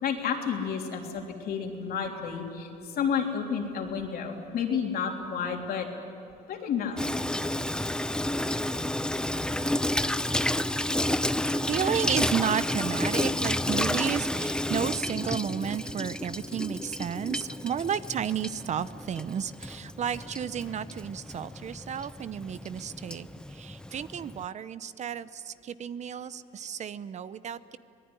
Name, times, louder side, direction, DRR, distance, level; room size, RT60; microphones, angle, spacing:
voice 1, 0.0-2.7 3.0-5.9 6.5-7.0, left 7 dB, 65° left, 2 dB, 3.5 m, -30 dB
Water tap faucet / Sink (filling or washing), 7.0-24.4, left 1 dB, 5° left, 0.6 m, -31 dB
voice 2, 11.5-27.8, right 8 dB, 45° right, 15 dB, 0.7 m, -32 dB
25.0 x 19.0 x 9.7 m, 2.6 s
cardioid pair, 110°, 17 cm